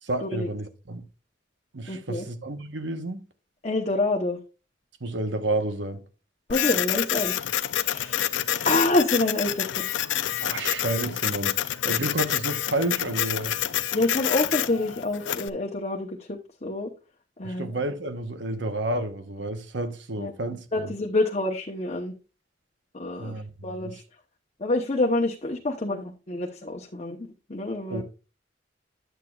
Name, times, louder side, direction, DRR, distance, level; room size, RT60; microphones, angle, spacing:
voice 1, 0.0-1.0 1.7-3.2 5.0-6.0 10.4-13.6 17.4-20.9 23.2-24.0 27.9-28.0, right 2 dB, 70° right, 1.0 m, -30 dB
voice 2, 1.9-2.3 3.6-4.4 6.5-7.4 7.8-8.2 8.6-9.9 13.9-16.9 17.4-17.7 20.2-20.3 20.7-22.1 22.9-23.3 23.6-24.0 24.6-28.0, left 2 dB, 35° left, 0.9 m, -27 dB
Printer, 6.5-15.5, left 11 dB, 80° left, 0.5 m, -28 dB
9.6 x 8.0 x 2.4 m
head